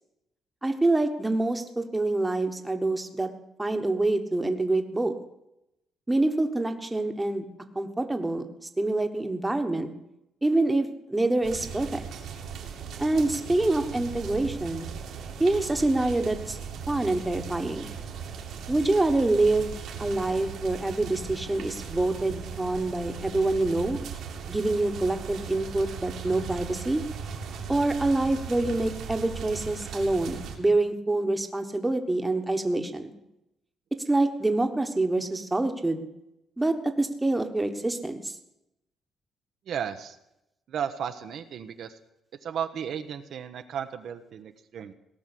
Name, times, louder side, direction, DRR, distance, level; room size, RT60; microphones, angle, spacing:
voice 1, 0.6-3.3 3.6-5.1 6.1-7.4 7.7-8.5 8.8-9.9 10.4-12.0 13.0-14.9 15.4-16.6 16.9-17.9 18.7-24.0 24.5-27.0 27.7-33.1 34.1-36.1 36.6-38.3, right 2 dB, 10° right, 6 dB, 1.3 m, -26 dB
sound 1, 11.4-30.6, right 6 dB, 80° right, 2.6 m, -38 dB
voice 2, 39.7-40.2 40.7-41.9 42.4-44.9, right 8 dB, 65° right, 7 dB, 1.0 m, -34 dB
17.5 x 6.2 x 9.8 m, 0.85 s
cardioid pair, 130°, 0 cm